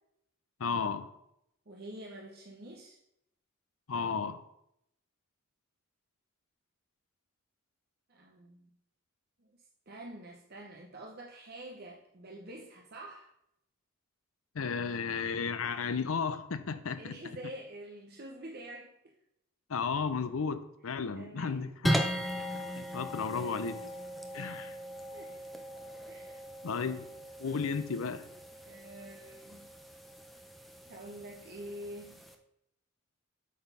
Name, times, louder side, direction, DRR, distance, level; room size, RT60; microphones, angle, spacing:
voice 1, 0.6-1.1 3.9-4.4 14.5-17.2 19.7-22.0 22.7-23.8 24.3-24.7 26.6-27.1 27.4-28.3, left 5 dB, 75° left, 12 dB, 0.6 m, -33 dB
voice 2, 1.7-3.0 8.1-8.7 9.4-13.3 17.0-19.1 21.1-21.6 24.3-24.8 25.1-25.7 26.1-26.5 28.7-29.7 30.9-32.3, right 1 dB, 50° right, -1 dB, 0.9 m, -47 dB
sound 1, 21.8-32.3, equal, ahead, 0.5 m, -38 dB
8.5 x 4.1 x 5.5 m, 0.78 s
head